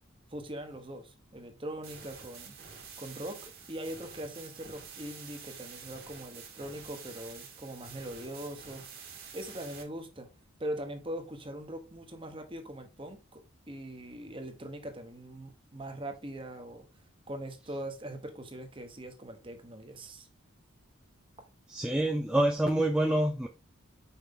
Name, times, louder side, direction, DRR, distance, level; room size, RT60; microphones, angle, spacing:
voice 1, 0.3-2.6 3.0-8.8 9.3-10.3 10.6-16.9 17.3-20.3, right 1 dB, 25° right, 1.0 m, -41 dB
sound 1, 1.8-9.8, right 6 dB, 45° right, 1.6 m, -48 dB
voice 2, 21.7-23.5, right 1 dB, 5° right, 0.4 m, -27 dB
5.7 x 4.7 x 3.6 m
head